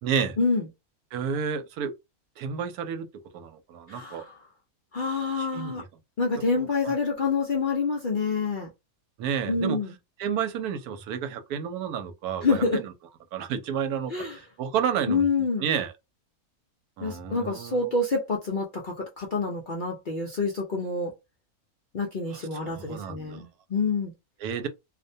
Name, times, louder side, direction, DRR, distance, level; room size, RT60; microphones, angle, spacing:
voice 1, 0.0-0.4 1.1-1.9 2.4-3.1 3.3-4.2 5.4-5.8 6.5-6.9 9.2-9.8 10.2-12.9 13.3-15.3 15.6-15.9 17.0-17.9 22.3-23.4 24.4-24.7, right 7 dB, 85° right, 1.1 m, -31 dB
voice 2, 3.9-4.4 4.9-5.8 6.2-8.7 9.5-9.9 12.4-12.8 14.1-14.4 15.1-15.7 17.0-21.1 21.9-24.1, left 4 dB, 60° left, 0.5 m, -27 dB
2.5 x 2.1 x 2.6 m
omnidirectional pair, 1.6 m